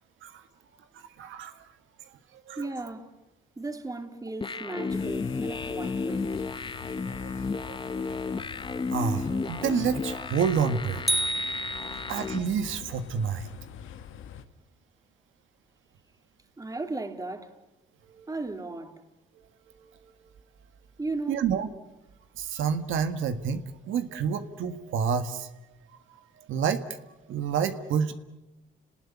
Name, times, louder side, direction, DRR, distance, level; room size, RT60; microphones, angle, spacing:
voice 1, 0.9-1.6 2.3-2.6 7.1-7.3 7.7-8.3 8.9-11.0 12.1-13.5 18.1-18.3 21.3-21.7 22.4-25.5 26.4-26.8 27.3-28.1, right 7 dB, 80° right, 1.7 m, -29 dB
voice 2, 2.6-3.1 3.6-6.3 16.6-17.6 18.3-19.0 21.0-21.4, right 2 dB, 15° right, 3.1 m, -36 dB
sound 1, 4.4-12.4, left 4 dB, 25° left, 1.0 m, -33 dB
sound 2, 4.9-14.4, left 9 dB, 80° left, 1.7 m, -45 dB
sound 3, 11.1-12.5, right 1 dB, ahead, 1.3 m, -30 dB
30.0 x 19.5 x 10.0 m
cardioid pair, 90°, 20 cm